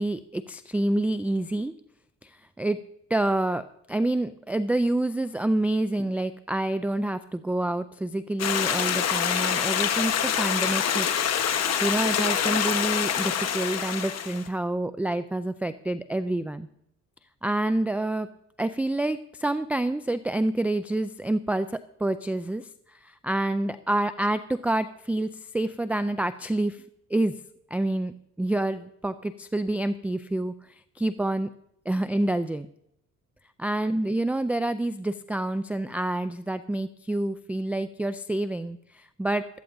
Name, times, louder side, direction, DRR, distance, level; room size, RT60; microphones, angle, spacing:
voice 1, 0.0-1.7 2.2-2.8 3.1-11.1 11.5-16.7 17.4-18.3 18.6-26.8 27.1-27.4 27.7-30.5 31.0-31.5 31.9-32.7 33.6-39.5, right 1 dB, 5° right, 12 dB, 0.3 m, -28 dB
Stream, 8.4-14.5, left 8 dB, 60° left, 1.2 m, -26 dB
16.5 x 12.5 x 2.6 m, 0.76 s
cardioid pair, 90°, 30 cm